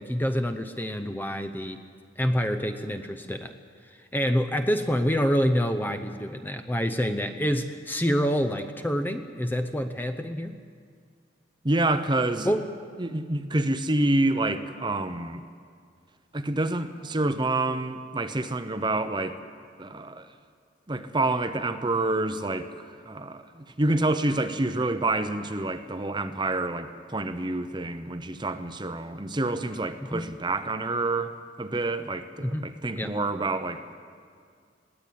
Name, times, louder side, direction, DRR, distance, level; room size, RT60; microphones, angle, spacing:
voice 1, 0.0-1.8 2.2-3.5 4.1-10.5 12.4-12.6 30.1-30.3 32.4-32.6 32.9-33.1, equal, 10° left, 8 dB, 0.7 m, -27 dB
voice 2, 11.6-12.5 13.0-15.4 16.3-19.4 19.8-20.3 20.9-33.9, right 2 dB, 25° right, 9 dB, 0.8 m, -28 dB
21.0 x 17.0 x 8.6 m, 2.1 s
head